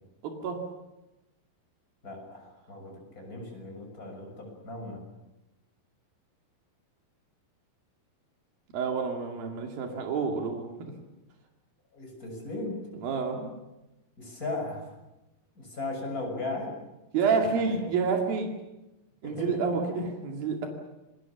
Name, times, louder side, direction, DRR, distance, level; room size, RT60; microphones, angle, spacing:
voice 1, 0.2-0.6 8.7-10.7 13.0-13.5 17.1-18.5 19.2-20.7, right 5 dB, 85° right, 2 dB, 4.2 m, -28 dB
voice 2, 2.0-5.0 11.9-12.8 14.2-14.8 15.6-16.7 17.5-17.9 19.2-19.6 19.9-20.0, left 2 dB, 25° left, 1 dB, 7.0 m, -37 dB
27.5 x 19.5 x 7.4 m, 0.98 s
omnidirectional pair, 4.0 m